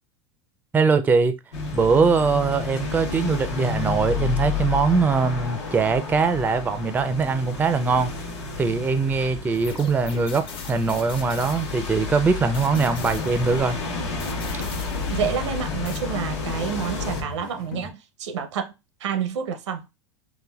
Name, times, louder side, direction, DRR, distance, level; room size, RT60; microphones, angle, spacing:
voice 1, 0.7-1.4 1.7-8.1 8.6-13.8, right 4 dB, 10° right, 0.3 m, -22 dB
sound 1, 1.5-17.2, left 5 dB, 85° left, 0.9 m, -31 dB
sound 2, 9.5-12.1 12.5-13.8 14.2-15.5 15.8-16.0, left 6 dB, 35° left, 0.6 m, -41 dB
sound 3, 12.6-17.9, left 4 dB, 60° left, 1.0 m, -37 dB
voice 2, 15.1-18.7 19.0-19.8, right 7 dB, 85° right, 0.7 m, -28 dB
3.9 x 2.3 x 2.2 m
hypercardioid pair, 100°, 14 cm